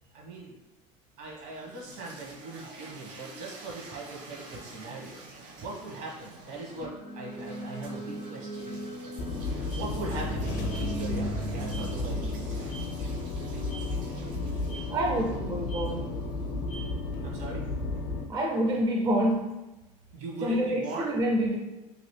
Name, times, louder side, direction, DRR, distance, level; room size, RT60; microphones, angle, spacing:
voice 1, 0.1-0.6 1.2-5.2 5.6-9.1 9.7-12.7 17.2-17.6 20.1-21.1, right 2 dB, 70° right, -3 dB, 1.2 m, -40 dB
sound 1, 1.2-17.2, right 2 dB, 55° right, 0.7 m, -49 dB
sound 2, 6.6-18.5, right 1 dB, 90° right, 1.4 m, -41 dB
sound 3, 9.2-18.2, left 2 dB, 55° left, 0.6 m, -33 dB
voice 2, 14.9-16.1 18.3-19.5 20.4-21.6, equal, 25° right, 0 dB, 0.4 m, -27 dB
2.9 x 2.6 x 3.1 m, 1.0 s
supercardioid pair, 115°, 16 cm